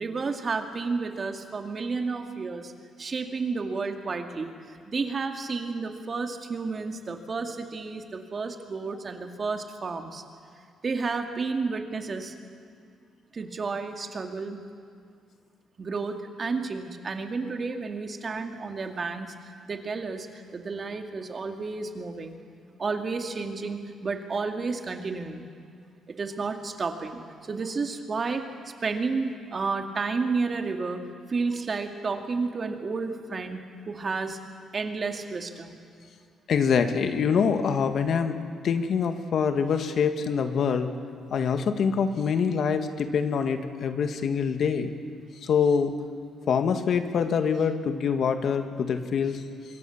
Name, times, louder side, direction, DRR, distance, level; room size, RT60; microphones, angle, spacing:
voice 1, 0.0-2.7 3.0-4.5 4.9-10.2 10.8-12.3 13.3-14.6 15.8-22.4 22.8-25.5 26.1-28.5 28.8-31.0 31.3-33.6 33.9-34.4 34.7-35.8, right 4 dB, 40° right, 5 dB, 2.2 m, -31 dB
voice 2, 36.5-40.9 41.3-44.9 45.4-45.9 46.5-49.4, left 6 dB, 60° left, 7 dB, 1.8 m, -25 dB
25.5 x 23.0 x 7.2 m, 2.2 s
cardioid pair, 90°, 0 cm